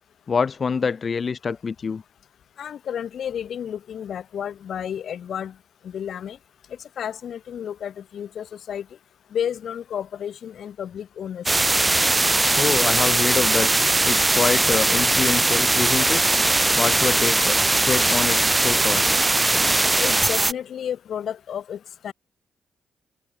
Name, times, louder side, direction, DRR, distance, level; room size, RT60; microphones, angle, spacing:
voice 1, 0.3-2.0 12.6-13.7 14.1-16.3 16.8-17.6 17.8-19.1, left 5 dB, 50° left, 1.1 m, -26 dB
voice 2, 2.6-5.5 5.8-6.4 7.0-8.8 9.3-11.5 20.0-22.1, left 9 dB, 65° left, 4.9 m, -31 dB
sound 1, 11.5-20.5, right 2 dB, 20° right, 0.6 m, -20 dB
hypercardioid pair, 50°, 0 cm